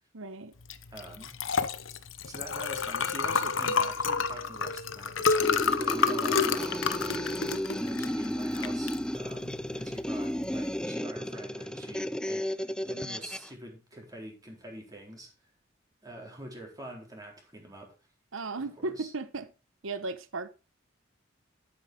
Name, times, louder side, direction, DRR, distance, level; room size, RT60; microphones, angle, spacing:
voice 1, 0.1-0.5 18.3-19.5 19.8-20.5, right 3 dB, 85° right, 1.0 m, -35 dB
Liquid, 0.6-10.8, left 5 dB, 75° left, 1.0 m, -30 dB
voice 2, 0.9-1.4 2.3-6.9 7.8-15.3 16.0-17.9 18.6-19.1, right 1 dB, 20° right, 4.1 m, -45 dB
sound 1, 5.3-13.5, equal, 5° left, 0.5 m, -33 dB
11.5 x 9.0 x 3.8 m
head